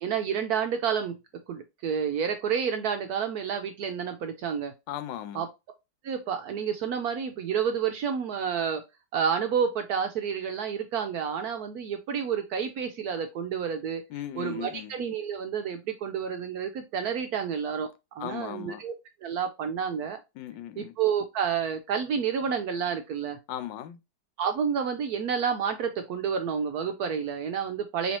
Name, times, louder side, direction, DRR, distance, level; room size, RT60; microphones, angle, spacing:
voice 1, 0.0-1.2 1.5-4.7 5.3-5.5 6.0-8.8 9.1-14.0 14.4-17.9 18.2-18.9 19.2-20.2 20.8-23.4 24.4-28.2, right 7 dB, 75° right, 0.9 m, -29 dB
voice 2, 4.9-5.4 14.1-14.9 18.2-18.8 20.4-20.9 23.5-24.0, left 12 dB, 80° left, 1.2 m, -37 dB
4.2 x 3.1 x 3.0 m
omnidirectional pair, 2.0 m